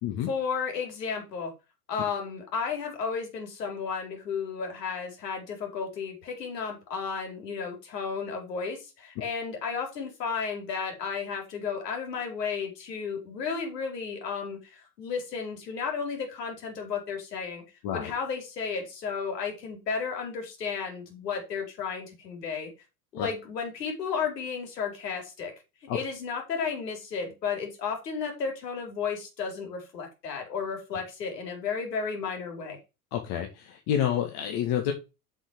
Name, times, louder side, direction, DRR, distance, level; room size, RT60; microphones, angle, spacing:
voice 1, 0.3-1.5 1.9-17.6 17.9-22.7 23.1-25.5 25.9-32.8, left 5 dB, 75° left, 2 dB, 4.4 m, -33 dB
voice 2, 33.1-34.9, left 10 dB, 50° left, 3 dB, 2.0 m, -29 dB
7.5 x 6.4 x 5.1 m, 0.28 s
hypercardioid pair, 80°, 49 cm